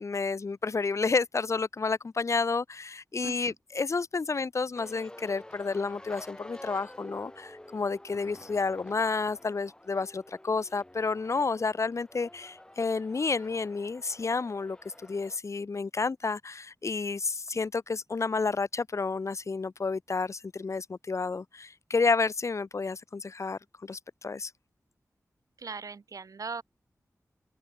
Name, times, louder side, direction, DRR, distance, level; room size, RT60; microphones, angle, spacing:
voice 1, 0.0-14.8 15.0-24.5, left 4 dB, 55° left, 3.5 m, -30 dB
voice 2, 3.2-3.5 25.6-26.6, right 5 dB, 70° right, 7.7 m, -39 dB
sound 1, 4.7-15.4, left 1 dB, 15° left, 7.7 m, -49 dB
wide cardioid pair, 115°, 6 cm